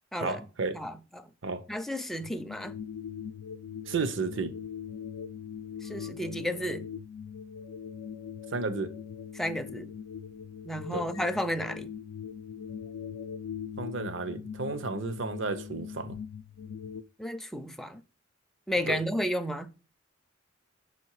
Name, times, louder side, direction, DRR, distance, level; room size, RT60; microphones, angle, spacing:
voice 1, 0.2-0.8 1.4-1.6 3.9-4.5 8.5-8.9 10.9-11.1 13.8-16.2 18.9-19.0, right 4 dB, 65° right, 0.7 m, -32 dB
voice 2, 0.7-1.3 1.7-2.8 5.8-6.9 9.3-9.9 10.6-11.9 17.2-18.0 18.7-19.7, equal, ahead, 0.4 m, -32 dB
sound 1, 2.2-17.0, left 7 dB, 85° left, 0.4 m, -41 dB
6.4 x 4.3 x 4.6 m
head